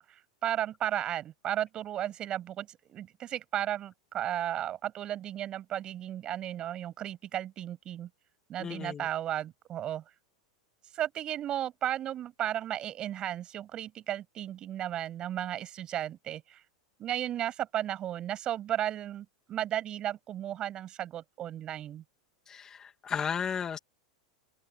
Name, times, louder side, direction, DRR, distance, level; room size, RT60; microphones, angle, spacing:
voice 1, 0.0-8.1 8.5-10.0 10.9-16.6 17.0-22.0, right 11 dB, 25° right, 6.3 m, -34 dB
voice 2, 8.6-9.1 22.5-23.8, left 7 dB, 20° left, 1.9 m, -34 dB
open air
supercardioid pair, 155°, 3 cm